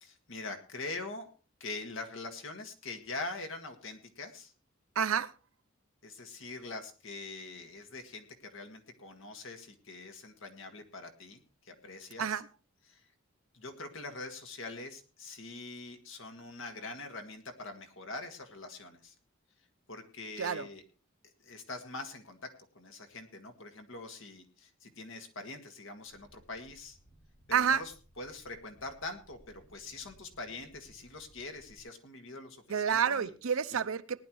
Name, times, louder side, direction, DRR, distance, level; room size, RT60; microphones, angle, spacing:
voice 1, 0.0-1.3 1.6-4.5 6.0-12.4 12.9-13.0 13.5-19.1 19.9-20.8 21.4-22.4 22.8-27.0 27.5-33.3 33.7-33.8, left 3 dB, 70° left, 1.8 m, -44 dB
voice 2, 5.0-5.3 12.2-12.5 20.4-20.7 27.5-27.8 32.7-34.3, right 7 dB, 75° right, 0.6 m, -29 dB
sound 1, 26.1-31.8, right 1 dB, 15° left, 3.5 m, -62 dB
19.0 x 11.0 x 3.1 m
head